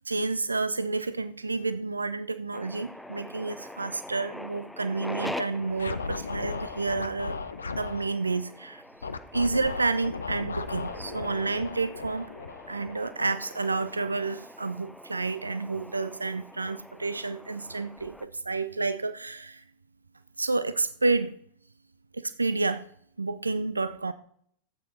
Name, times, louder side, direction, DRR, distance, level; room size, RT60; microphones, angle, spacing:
voice 1, 0.0-7.4 7.7-8.8 9.3-12.3 12.7-19.6 20.4-21.3 22.1-22.9 23.2-24.1, right 3 dB, 80° right, 0.5 m, -30 dB
sound 1, 2.5-18.3, left 1 dB, 5° left, 0.7 m, -44 dB
Scratching (performance technique), 5.7-8.1 9.0-13.3, left 4 dB, 75° left, 0.6 m, -36 dB
13.0 x 8.5 x 4.1 m
figure-of-eight pair, 90°, 0 cm